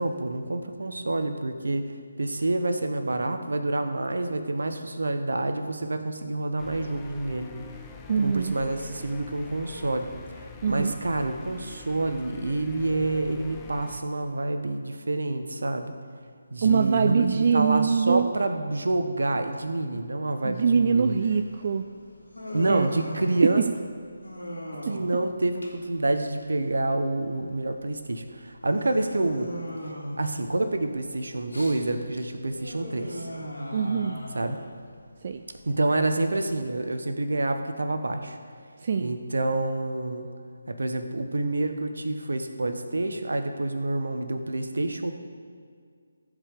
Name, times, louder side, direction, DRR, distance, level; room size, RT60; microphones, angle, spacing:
voice 1, 0.0-1.9 2.2-7.5 8.2-10.1 10.4-15.9 16.5-21.1 22.5-23.6 24.7-29.5 29.8-29.9 30.2-33.3 34.3-34.6 35.7-38.4 39.0-40.3 40.7-45.1, right 2 dB, 70° right, 7 dB, 1.0 m, -28 dB
sound 1, 6.6-14.0, left 5 dB, 15° left, 0.6 m, -45 dB
voice 2, 8.1-8.5 10.6-10.9 16.6-18.3 20.4-21.9 22.7-22.9 23.4-23.7 24.8-24.9 33.7-34.2 35.2-35.4 38.8-39.2, right 6 dB, 40° right, 7 dB, 0.4 m, -23 dB
Human voice, 21.4-36.6, equal, 90° left, 2.7 m, -40 dB
14.5 x 5.1 x 6.8 m, 2.1 s
figure-of-eight pair, 155°, 0 cm